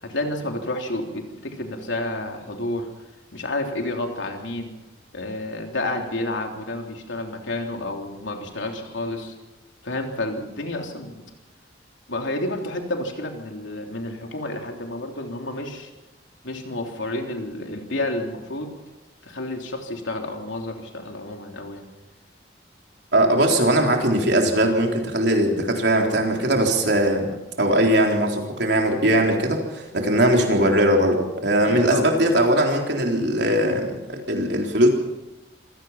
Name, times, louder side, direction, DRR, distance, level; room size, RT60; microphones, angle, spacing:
voice 1, 0.0-2.9 3.3-4.8 5.1-9.3 9.8-11.2 12.1-15.9 16.4-18.7 19.2-21.9 31.6-32.1, left 2 dB, 85° left, 3 dB, 3.4 m, -30 dB
voice 2, 23.1-27.3 27.6-34.9, right 1 dB, 65° right, 2 dB, 3.8 m, -20 dB
25.5 x 17.0 x 5.8 m, 1.0 s
head